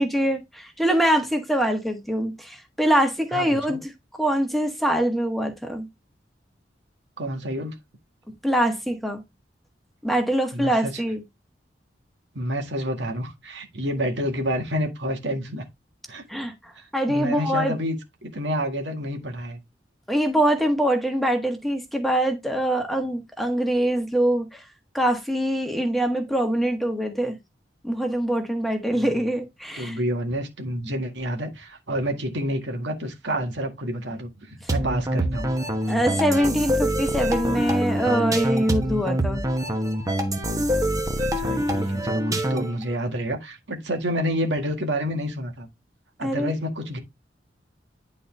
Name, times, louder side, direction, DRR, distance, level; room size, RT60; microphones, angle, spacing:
voice 1, 0.0-3.9 4.2-5.9 8.4-9.2 10.0-11.2 16.3-17.7 20.1-24.6 24.9-27.4 27.8-30.0 34.6-34.7 35.9-39.4 46.2-46.5, right 1 dB, ahead, 1.4 m, -24 dB
voice 2, 3.3-3.8 7.2-7.7 10.5-10.9 12.4-15.6 16.1-16.2 17.1-19.6 29.0-29.1 29.8-35.5 41.2-45.7 46.2-47.0, equal, 90° right, 1.8 m, -29 dB
sound 1, 34.7-42.8, equal, 20° right, 1.1 m, -25 dB
9.8 x 4.1 x 3.5 m
head